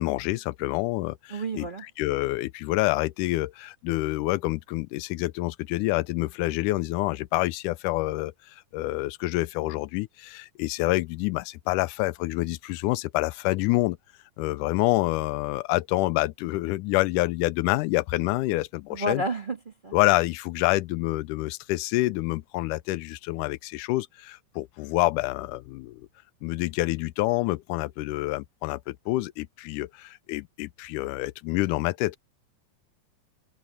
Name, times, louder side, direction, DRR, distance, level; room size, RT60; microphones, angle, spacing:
voice 1, 0.0-1.7 2.0-14.0 14.4-19.2 19.9-26.0 26.4-32.2, left 19 dB, 85° left, 2.1 m, -27 dB
voice 2, 1.3-1.8 18.9-20.0, right 2 dB, 20° right, 1.5 m, -31 dB
open air
omnidirectional pair, 3.6 m